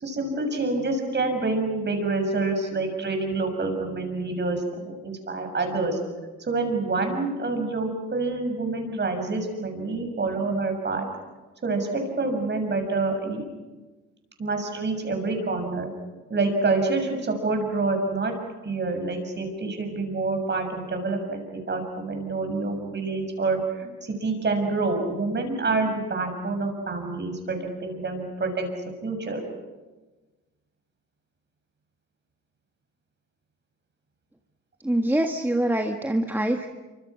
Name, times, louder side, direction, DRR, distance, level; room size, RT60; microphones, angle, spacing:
voice 1, 0.0-6.0 6.4-11.0 11.6-13.5 14.4-15.9 16.3-18.3 18.6-28.7 29.0-29.4, right 3 dB, 35° right, 4 dB, 6.7 m, -27 dB
voice 2, 34.8-36.7, right 1 dB, 5° right, 4 dB, 1.6 m, -24 dB
27.0 x 25.0 x 6.2 m, 1.2 s
cardioid pair, 90°, 30 cm